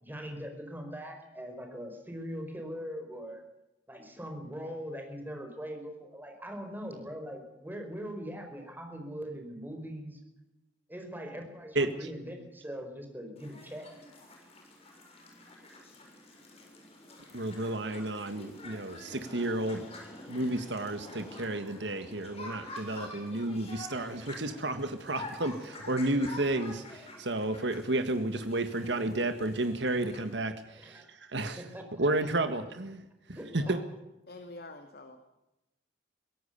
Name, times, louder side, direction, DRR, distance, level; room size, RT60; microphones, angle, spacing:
voice 1, 0.0-3.4 3.9-10.2 10.9-13.9 30.8-32.0 32.4-32.5 33.3-33.7, equal, 10° right, 4 dB, 5.0 m, -41 dB
sound 1, 13.4-30.3, left 2 dB, 35° left, 6.9 m, -47 dB
voice 2, 17.3-19.8 20.3-31.0 31.3-31.6 32.0-33.0 33.5-33.8, right 2 dB, 70° right, 9 dB, 1.8 m, -31 dB
voice 3, 33.5-33.8 34.3-35.2, left 2 dB, 60° left, 6 dB, 2.1 m, -47 dB
23.5 x 17.5 x 6.9 m, 0.94 s
head